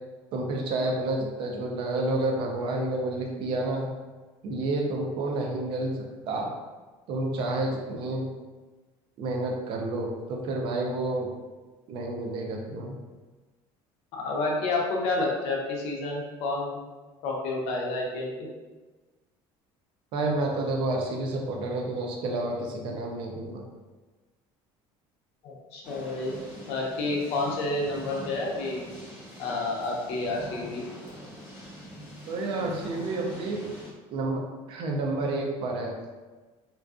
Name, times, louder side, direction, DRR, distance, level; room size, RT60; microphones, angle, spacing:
voice 1, 0.3-3.9 4.4-6.0 6.3-6.5 7.1-8.3 9.2-11.3 11.9-13.0 20.1-23.7 32.3-33.6 34.1-35.9, right 2 dB, 50° right, 1 dB, 0.5 m, -29 dB
voice 2, 14.2-16.8 17.2-18.3 25.4-26.3 26.7-28.8 29.4-30.8, left 2 dB, 65° left, -1 dB, 0.6 m, -29 dB
sound 1, 25.8-33.9, equal, 15° right, 0.8 m, -44 dB
2.5 x 2.2 x 2.4 m, 1.2 s
cardioid pair, 165°, 11 cm